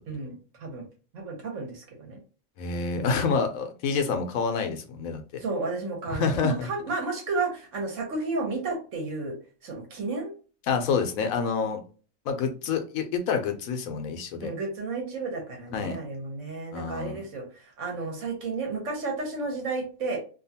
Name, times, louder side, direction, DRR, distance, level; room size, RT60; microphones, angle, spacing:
voice 1, 0.1-0.9 1.1-2.2 2.9-3.2 5.4-9.4 9.6-10.3 14.4-17.4 17.8-20.2, right 3 dB, 60° right, 1 dB, 1.2 m, -32 dB
voice 2, 2.6-5.4 6.1-6.7 10.7-11.8 12.3-14.5 15.7-16.0 16.7-17.2, left 5 dB, 75° left, 6 dB, 1.0 m, -28 dB
2.7 x 2.3 x 2.7 m, 0.37 s
omnidirectional pair, 1.5 m